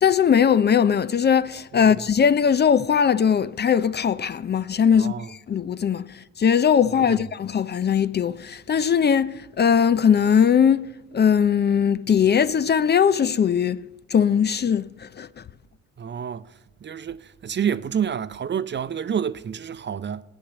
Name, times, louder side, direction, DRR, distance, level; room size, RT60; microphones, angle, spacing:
voice 1, 0.0-13.8 14.1-15.4, left 7 dB, 35° left, 0.5 m, -20 dB
voice 2, 1.7-2.0 4.9-5.3 7.0-7.2 16.0-16.5 16.8-20.2, right 8 dB, 35° right, 0.6 m, -29 dB
16.0 x 10.0 x 8.0 m
cardioid pair, 90°, 30 cm